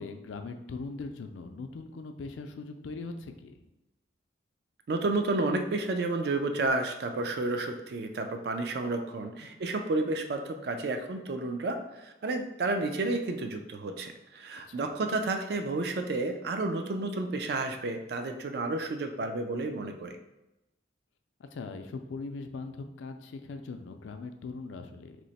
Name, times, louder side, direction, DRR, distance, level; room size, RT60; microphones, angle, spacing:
voice 1, 0.0-3.6 9.4-9.5 14.7-14.9 21.4-25.2, left 3 dB, 85° left, 7 dB, 0.3 m, -40 dB
voice 2, 4.9-20.2, right 2 dB, 55° right, 6 dB, 0.3 m, -31 dB
3.0 x 2.0 x 4.0 m, 0.92 s
head